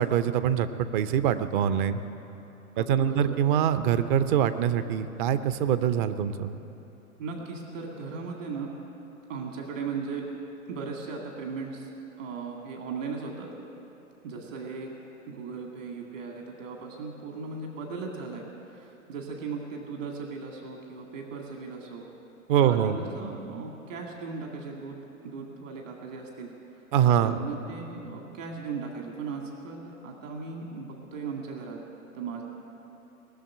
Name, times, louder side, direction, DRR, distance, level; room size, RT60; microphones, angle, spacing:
voice 1, 0.0-2.0 2.8-6.5 22.5-23.0 26.9-27.4, right 9 dB, 35° right, 12 dB, 0.7 m, -24 dB
voice 2, 2.7-3.3 7.2-8.7 9.3-10.2 10.7-11.9 12.2-13.5 14.2-14.9 15.3-22.1 22.6-31.8 32.1-32.4, right 4 dB, 60° right, 1 dB, 2.1 m, -37 dB
18.5 x 7.1 x 9.9 m, 3.0 s
figure-of-eight pair, 100°, 43 cm